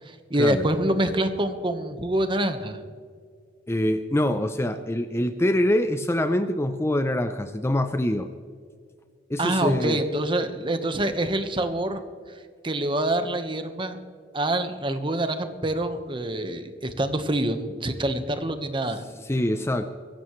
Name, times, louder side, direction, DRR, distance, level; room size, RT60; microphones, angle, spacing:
voice 1, 0.1-2.8 9.4-12.0 12.6-14.0 14.3-19.0, right 1 dB, 25° right, 8 dB, 1.2 m, -26 dB
voice 2, 3.7-8.3 9.3-10.0 19.2-19.9, left 1 dB, 15° left, 9 dB, 0.6 m, -24 dB
21.5 x 16.5 x 3.2 m, 2.1 s
head